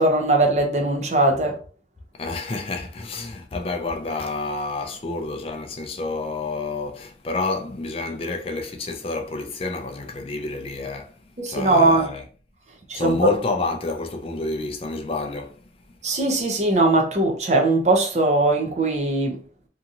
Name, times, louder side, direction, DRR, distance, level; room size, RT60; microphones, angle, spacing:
voice 1, 0.0-1.6 11.4-12.1 12.9-13.2 16.0-19.4, right 2 dB, 40° right, 0.6 m, -20 dB
voice 2, 2.2-11.2 11.4-12.2 12.9-15.6, left 3 dB, 30° left, 0.3 m, -29 dB
2.8 x 2.7 x 2.4 m
head